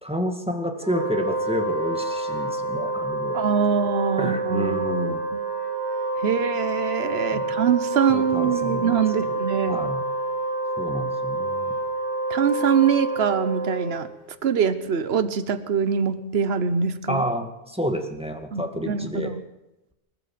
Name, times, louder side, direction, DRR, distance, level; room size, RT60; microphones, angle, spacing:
voice 1, 0.0-3.4 4.2-5.2 7.3-7.6 8.1-9.4 9.7-10.0 10.8-11.8 17.1-19.3, equal, 5° right, 4 dB, 2.1 m, -29 dB
Wind instrument woodwind instrument, 0.8-14.2, right 2 dB, 35° right, 6.7 m, -28 dB
voice 2, 3.3-5.4 6.2-9.8 12.3-14.1 14.4-17.2 18.5-19.4, right 7 dB, 55° right, 12 dB, 1.3 m, -24 dB
26.5 x 13.0 x 7.8 m, 0.96 s
omnidirectional pair, 1.3 m